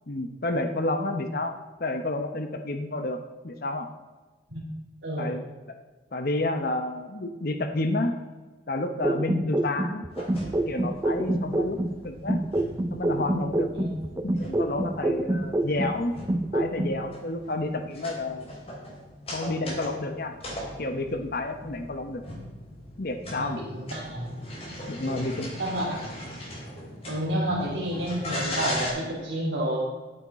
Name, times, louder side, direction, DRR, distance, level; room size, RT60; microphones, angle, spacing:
voice 1, 0.1-1.5 1.8-3.2 3.4-3.9 5.2-5.8 6.1-8.1 8.7-10.0 10.7-11.8 12.0-12.4 12.9-13.9 14.2-16.1 16.5-18.5 19.3-20.3 20.8-22.2 23.0-23.6 24.9-25.5, left 2 dB, 50° left, 6 dB, 0.9 m, -30 dB
sound 1, 9.0-12.0 12.3-16.0 16.3-17.0, right 1 dB, 15° right, 0.4 m, -26 dB
sound 2, 10.1-28.9, left 1 dB, 30° left, 3.1 m, -39 dB
voice 2, 23.9-24.2 25.0-25.3 25.6-26.0 27.1-29.8, right 1 dB, 65° right, -4 dB, 3.4 m, -30 dB
11.0 x 8.6 x 4.2 m, 1.3 s
head